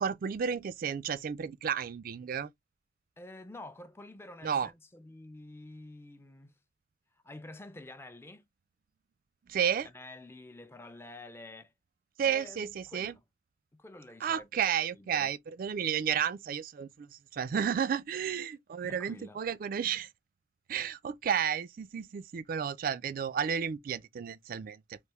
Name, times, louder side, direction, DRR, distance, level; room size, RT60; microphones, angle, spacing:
voice 1, 0.0-2.5 4.4-4.7 9.5-9.9 12.2-13.1 14.2-20.1 20.7-25.0, right 8 dB, 50° right, 0.3 m, -32 dB
voice 2, 3.2-6.6 7.2-8.4 9.8-11.7 12.2-13.2 13.7-15.3 18.8-19.4, left 2 dB, 15° left, 0.4 m, -49 dB
3.4 x 2.6 x 2.9 m
head